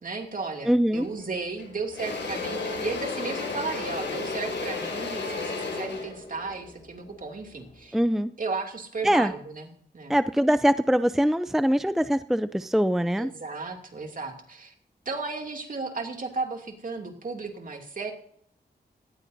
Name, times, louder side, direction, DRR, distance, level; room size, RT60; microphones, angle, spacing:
voice 1, 0.0-8.0 8.4-10.2 13.2-14.7 15.0-18.1, right 4 dB, 50° right, 3 dB, 2.6 m, -34 dB
voice 2, 0.7-1.1 7.9-8.3 9.0-9.3 10.1-13.3, equal, ahead, 12 dB, 0.5 m, -23 dB
Engine / Drill, 1.0-1.2 1.6-7.7, left 3 dB, 85° left, 6.4 m, -33 dB
18.5 x 14.5 x 2.7 m, 0.63 s
wide cardioid pair, 90°, 18 cm